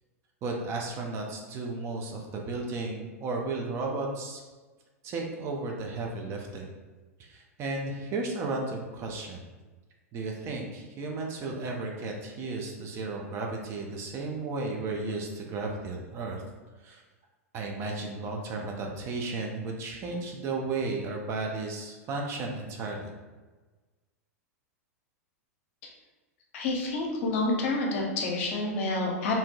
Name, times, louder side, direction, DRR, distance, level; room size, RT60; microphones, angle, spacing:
voice 1, 0.4-4.4 5.0-6.7 7.2-9.4 10.1-16.4 16.8-17.0 17.5-23.1, right 3 dB, 35° right, 0 dB, 0.5 m, -34 dB
voice 2, 26.5-29.3, left 2 dB, 50° left, 0 dB, 0.7 m, -28 dB
3.6 x 2.7 x 2.3 m, 1.3 s
figure-of-eight pair, 95°, 8 cm